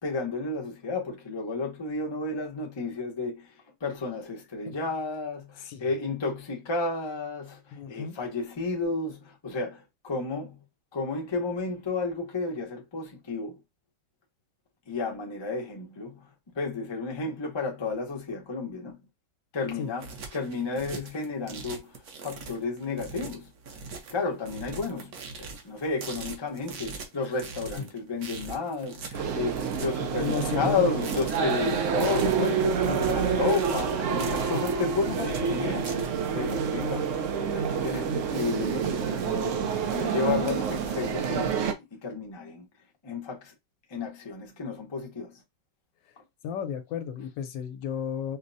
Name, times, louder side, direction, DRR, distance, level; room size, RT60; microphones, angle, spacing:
voice 1, 0.0-3.5 3.8-10.6 10.9-13.6 14.9-16.3 16.5-19.0 19.5-21.9 22.2-23.5 24.1-25.1 25.4-36.0 36.3-37.1 37.5-42.7 43.0-43.5 43.9-45.4, left 3 dB, 35° left, 0.4 m, -32 dB
voice 2, 5.6-5.9 7.7-8.2 19.8-20.0 27.7-27.8 30.2-30.9 34.5-34.7 46.4-48.4, left 7 dB, 85° left, 1.3 m, -33 dB
sound 1, 19.8-36.5, right 4 dB, 60° right, 1.2 m, -41 dB
sound 2, 29.1-41.7, right 6 dB, 90° right, 0.6 m, -28 dB
4.9 x 2.0 x 2.6 m
omnidirectional pair, 1.9 m